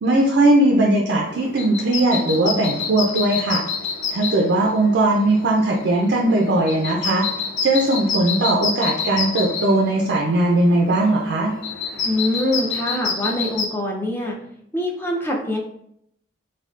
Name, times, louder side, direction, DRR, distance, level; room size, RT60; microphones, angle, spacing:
voice 1, 0.0-3.6 4.1-7.3 7.6-11.5, right 2 dB, 75° right, -1 dB, 0.4 m, -19 dB
sound 1, 1.2-13.7, left 5 dB, 90° left, 0.5 m, -29 dB
voice 2, 12.0-14.3 14.7-15.6, left 1 dB, 10° left, -1 dB, 0.4 m, -24 dB
3.5 x 2.3 x 2.4 m, 0.72 s
head